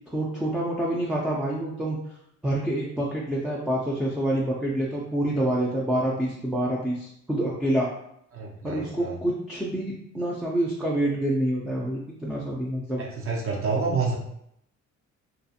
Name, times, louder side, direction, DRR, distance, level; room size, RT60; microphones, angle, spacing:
voice 1, 0.1-2.2 2.4-7.9 8.6-13.0, right 1 dB, ahead, -5 dB, 0.4 m, -27 dB
voice 2, 8.3-9.2 13.0-14.1, right 4 dB, 45° right, -1 dB, 0.7 m, -28 dB
2.4 x 2.3 x 2.7 m, 0.74 s
cardioid pair, 90°, 30 cm